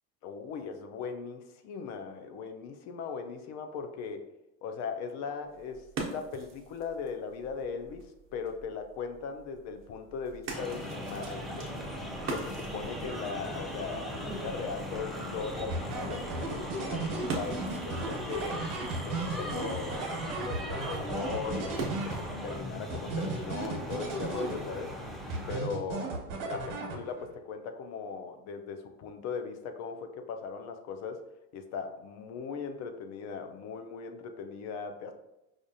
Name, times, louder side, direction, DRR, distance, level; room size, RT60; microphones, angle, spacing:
voice 1, 0.2-4.2 4.6-8.0 8.3-11.7 12.3-18.6 19.0-24.9 25.5-26.1 26.4-31.2 31.5-35.1, left 5 dB, 55° left, 6 dB, 0.5 m, -39 dB
sound 1, 5.4-22.5, right 4 dB, 40° right, 0.8 m, -45 dB
sound 2, 10.5-25.6, equal, ahead, 0.4 m, -39 dB
sound 3, 15.7-22.5 22.9-24.9 25.3-27.3, right 3 dB, 70° right, 1.0 m, -36 dB
4.9 x 2.4 x 2.7 m, 0.91 s
cardioid pair, 135°, 34 cm